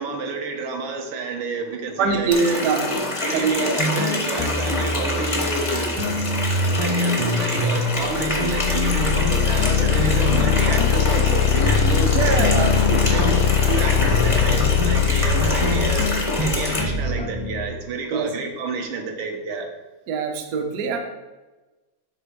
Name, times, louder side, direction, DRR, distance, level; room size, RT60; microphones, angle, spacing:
voice 1, 0.0-2.6 3.2-5.9 6.8-12.5 12.9-13.3 13.7-16.1 16.4-19.7, right 4 dB, 80° right, 3 dB, 1.7 m, -30 dB
voice 2, 2.0-2.9 3.3-3.8 12.1-13.2 18.1-18.3 20.1-21.0, right 5 dB, 60° right, 4 dB, 1.0 m, -23 dB
Water tap faucet, 2.3-16.8, left 2 dB, 50° left, 0.3 m, -26 dB
sound 1, 3.8-7.9 8.2-17.7, equal, 35° right, 0.4 m, -26 dB
sound 2, 8.1-16.9, left 9 dB, 80° left, 0.7 m, -21 dB
7.8 x 2.7 x 5.8 m, 1.2 s
omnidirectional pair, 2.2 m